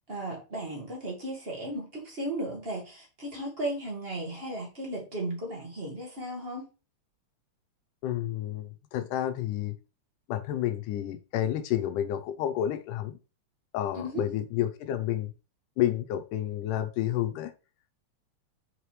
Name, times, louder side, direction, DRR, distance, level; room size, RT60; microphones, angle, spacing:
voice 1, 0.1-6.6 13.9-14.2, right 1 dB, 25° right, 1.5 m, -35 dB
voice 2, 8.0-9.7 10.3-13.2 13.7-15.3 15.8-17.5, left 12 dB, 85° left, 2.3 m, -30 dB
6.6 x 4.9 x 3.2 m
omnidirectional pair, 3.6 m